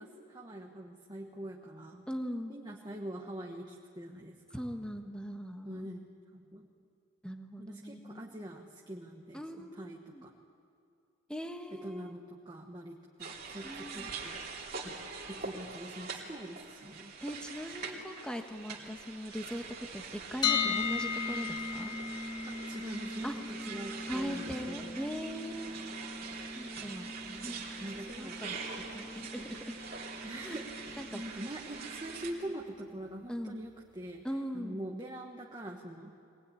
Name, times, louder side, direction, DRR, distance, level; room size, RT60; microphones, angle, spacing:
voice 1, 0.0-2.1 2.5-4.4 5.6-6.1 6.3-6.7 7.6-10.3 11.8-14.4 14.8-15.0 15.3-17.1 22.5-25.0 27.2-28.4 30.2-34.2 34.5-36.1, right 1 dB, 20° right, 0 dB, 1.4 m, -44 dB
voice 2, 2.1-2.6 4.5-5.9 7.2-8.3 9.3-10.2 11.3-12.1 13.6-14.1 17.2-22.0 23.2-23.3 24.1-25.9 26.5-27.1 27.4-28.6 28.9-29.8 30.4-30.6 31.0-31.2 33.3-33.6 34.2-34.9, equal, 5° left, 5 dB, 1.4 m, -40 dB
sound 1, 13.2-32.3, right 4 dB, 50° right, 3.1 m, -44 dB
sound 2, 20.4-32.3, left 5 dB, 20° left, 1.4 m, -38 dB
23.0 x 19.5 x 9.8 m, 2.4 s
head